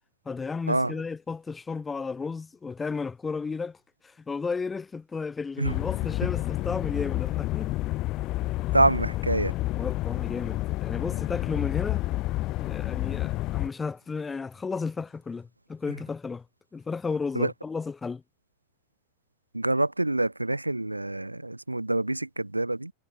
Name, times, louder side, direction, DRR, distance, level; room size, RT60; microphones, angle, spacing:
voice 1, 0.2-3.8 4.0-7.7 9.8-12.0 12.6-16.4 16.7-18.2, left 4 dB, 15° left, 1.6 m, -33 dB
sound 1, 5.6-13.7, left 18 dB, 35° left, 2.1 m, -29 dB
voice 2, 8.7-9.5 17.4-17.5 19.5-22.9, right 2 dB, 85° right, 0.6 m, -26 dB
figure-of-eight pair, 90°, 0 cm